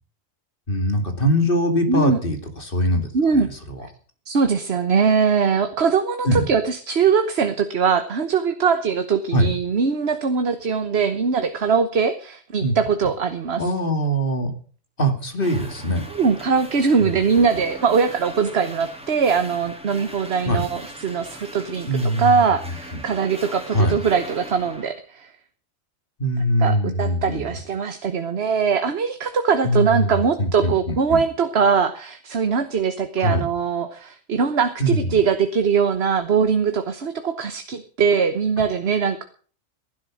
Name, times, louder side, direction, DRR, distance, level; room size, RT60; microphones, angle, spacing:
voice 1, 0.7-3.4 3.7-3.8 6.2-6.5 9.3-9.5 12.6-12.7 13.6-14.5 15.0-16.0 17.0-17.1 20.4-20.7 21.9-22.5 22.9-23.0 23.7-24.0 26.2-27.5 29.6-31.2 33.2-33.5 34.8-35.2, equal, 40° left, 6 dB, 2.8 m, -22 dB
voice 2, 1.9-2.2 3.1-3.5 4.3-13.6 16.1-25.3 26.6-39.2, right 6 dB, 55° right, 8 dB, 1.3 m, -21 dB
sound 1, 15.4-24.9, equal, 5° right, 3.1 m, -40 dB
16.5 x 11.5 x 6.3 m, 0.43 s
omnidirectional pair, 1.4 m